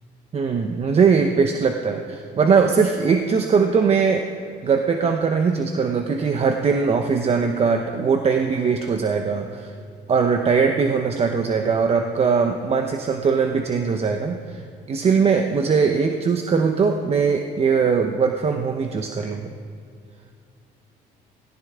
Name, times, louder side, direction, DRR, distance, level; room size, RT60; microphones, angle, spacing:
voice 1, 0.3-4.3 4.6-9.7 10.1-14.6 14.9-19.5, right 5 dB, 35° right, 5 dB, 0.8 m, -20 dB
17.5 x 16.0 x 3.7 m, 2.3 s
cardioid pair, 110°, 17 cm